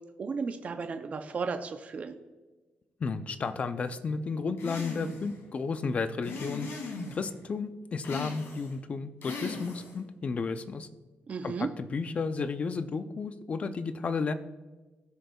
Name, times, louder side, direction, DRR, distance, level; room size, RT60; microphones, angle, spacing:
voice 1, 0.2-2.2 11.3-11.7, right 4 dB, 35° right, 6 dB, 0.5 m, -34 dB
voice 2, 3.0-6.7 7.1-10.9 11.4-14.3, left 4 dB, 35° left, 10 dB, 0.5 m, -33 dB
sound 1, 4.6-5.3 6.2-7.3 8.0-8.7 9.2-10.0, left 3 dB, 90° left, 2.4 m, -38 dB
18.5 x 6.5 x 2.3 m, 1.2 s
wide cardioid pair, 165°, 4 cm